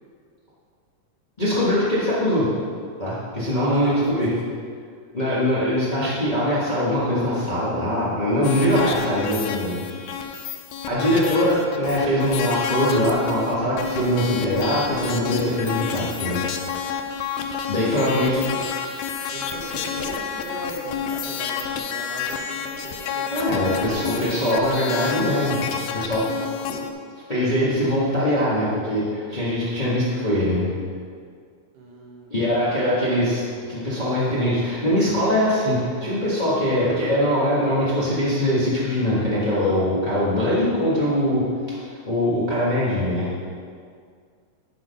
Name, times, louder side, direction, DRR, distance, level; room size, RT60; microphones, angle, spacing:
voice 1, 1.4-2.5 3.0-4.3 5.1-9.9 10.9-16.4 17.7-18.5 23.3-26.3 26.6-26.8 27.3-30.7 32.3-33.4 33.7-41.5 41.8-43.4, equal, 40° left, -9 dB, 0.6 m, -22 dB
voice 2, 3.5-4.0 4.5-4.6 18.0-18.7 19.3-23.8 31.7-32.8, right 2 dB, 80° right, -3 dB, 3.0 m, -38 dB
sound 1, 8.4-26.9, left 7 dB, 80° left, 1.6 m, -29 dB
10.5 x 4.1 x 5.3 m, 2.1 s
omnidirectional pair, 3.7 m